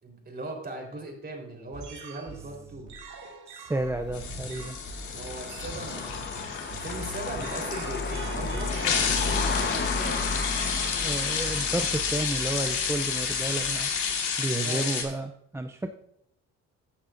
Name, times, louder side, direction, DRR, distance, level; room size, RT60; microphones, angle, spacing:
voice 1, 0.0-2.9 5.1-10.8 14.4-14.8, right 2 dB, 30° right, 1 dB, 3.9 m, -39 dB
sound 1, 1.7-12.2, right 4 dB, 70° right, 2.4 m, -44 dB
voice 2, 3.5-4.8 11.0-13.9 14.4-15.9, right 2 dB, 10° right, 6 dB, 0.4 m, -31 dB
sound 2, 3.8-14.5, left 4 dB, 35° left, 1.1 m, -34 dB
sound 3, 4.1-15.0, left 6 dB, 80° left, 2.3 m, -31 dB
15.5 x 8.8 x 2.6 m, 0.77 s
cardioid pair, 90°, 30 cm